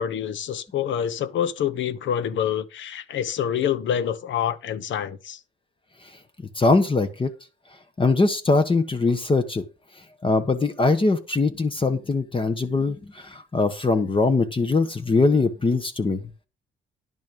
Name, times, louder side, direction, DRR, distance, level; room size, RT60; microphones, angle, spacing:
voice 1, 0.0-5.4, left 9 dB, 70° left, 1.1 m, -26 dB
voice 2, 6.6-7.3 8.0-9.6 10.2-16.2, left 3 dB, 25° left, 1.3 m, -22 dB
11.0 x 6.3 x 5.3 m
cardioid pair, 90°, 20 cm